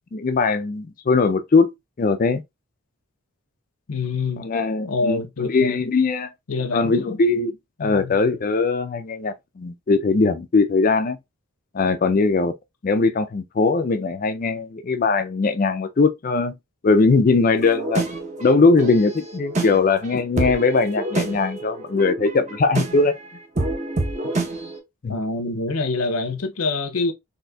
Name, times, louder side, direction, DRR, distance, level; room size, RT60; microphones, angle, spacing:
voice 1, 0.1-1.7 2.0-2.4 4.4-6.3 6.7-11.2 11.7-12.5 12.8-16.5 16.8-18.0 18.4-23.2 25.0-25.2, left 4 dB, 40° left, 0.4 m, -20 dB
voice 2, 3.9-4.5 4.9-5.8 6.5-7.0 7.8-8.1 25.1-27.1, left 3 dB, 80° left, 0.8 m, -26 dB
sound 1, 17.6-24.8, right 2 dB, 30° right, 0.7 m, -28 dB
4.1 x 2.7 x 2.2 m
head